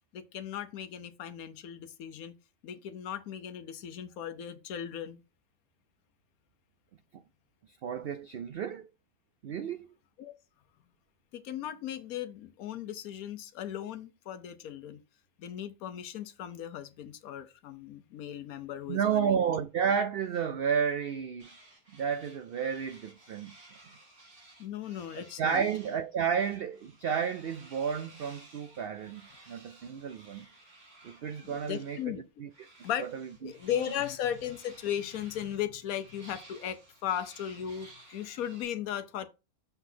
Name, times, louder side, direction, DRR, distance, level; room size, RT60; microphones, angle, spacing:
voice 1, 0.1-2.3 2.6-5.2 10.2-10.3 11.3-15.0 15.4-19.4 24.6-25.6 31.4-32.2 32.8-33.1 33.4-39.3, left 10 dB, 75° left, 1.2 m, -37 dB
voice 2, 7.7-8.9 9.4-9.9 18.9-21.5 21.9-23.5 25.2-30.5 31.0-32.1 32.4-32.5 33.0-33.5, right 7 dB, 90° right, 0.5 m, -32 dB
sound 1, 21.4-26.0 26.3-32.1 32.5-38.6, right 2 dB, 55° right, 2.4 m, -56 dB
6.8 x 6.1 x 2.7 m
omnidirectional pair, 1.5 m